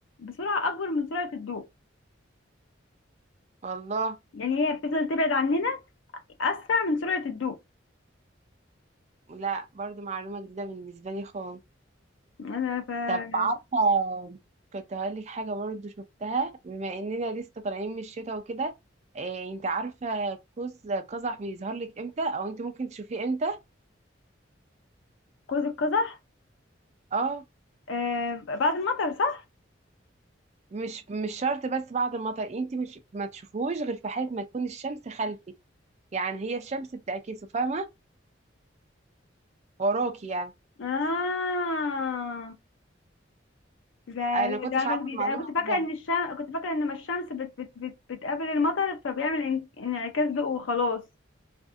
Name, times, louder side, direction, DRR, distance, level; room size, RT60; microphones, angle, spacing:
voice 1, 0.2-1.6 4.3-5.8 6.4-7.6 12.4-13.5 25.5-26.2 27.9-29.4 40.8-42.5 44.1-51.0, left 3 dB, 80° left, 0.5 m, -28 dB
voice 2, 3.6-4.2 9.3-11.6 13.1-14.4 14.7-15.9 16.2-18.7 19.1-23.6 27.1-27.4 30.7-35.4 36.1-37.9 39.8-40.5 44.3-45.8, right 3 dB, 35° right, 0.4 m, -31 dB
2.5 x 2.4 x 2.4 m
head